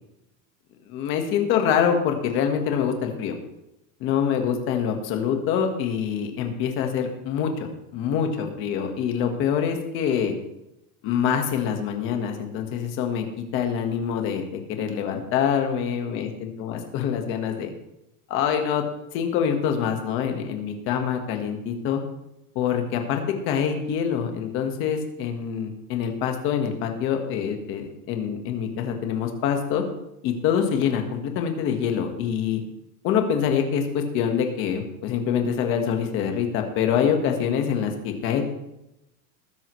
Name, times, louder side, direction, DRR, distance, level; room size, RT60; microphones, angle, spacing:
voice 1, 0.9-3.3 4.0-7.7 7.9-10.3 11.0-17.7 18.3-18.8 19.1-22.0 22.5-29.8 30.2-32.6 33.0-38.6, left 8 dB, 25° left, 4 dB, 1.4 m, -25 dB
19.5 x 10.0 x 3.2 m, 0.88 s
supercardioid pair, 180°, 46 cm